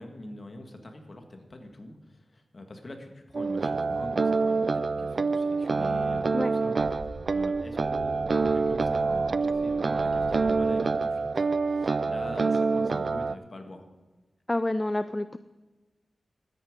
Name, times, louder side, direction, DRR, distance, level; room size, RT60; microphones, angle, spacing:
voice 1, 0.0-13.8, left 2 dB, 40° left, 5 dB, 1.8 m, -44 dB
sound 1, 3.3-13.4, right 4 dB, 55° right, 0.4 m, -26 dB
sound 2, 6.7-10.6, equal, 10° right, 1.9 m, -46 dB
voice 2, 14.5-15.4, left 1 dB, 15° left, 12 dB, 0.4 m, -28 dB
13.0 x 9.8 x 5.2 m, 1.2 s
wide cardioid pair, 105°, 0 cm